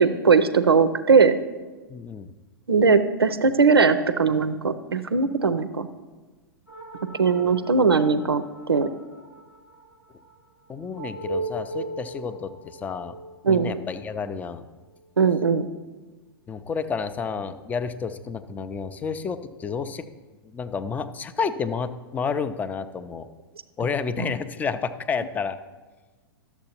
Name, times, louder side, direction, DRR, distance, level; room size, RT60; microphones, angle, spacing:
voice 1, 0.0-1.3 2.7-5.9 7.2-8.9 13.4-13.7 15.2-15.7 24.2-24.3, right 5 dB, 85° right, 12 dB, 0.4 m, -19 dB
voice 2, 1.9-2.3 10.7-13.2 13.5-14.6 16.5-20.0 20.4-23.3 23.8-25.6, left 5 dB, 15° left, 12 dB, 0.4 m, -30 dB
sound 1, 6.7-15.5, right 2 dB, 85° left, 2.0 m, -39 dB
12.0 x 7.0 x 2.8 m, 1.3 s
figure-of-eight pair, 100°, 12 cm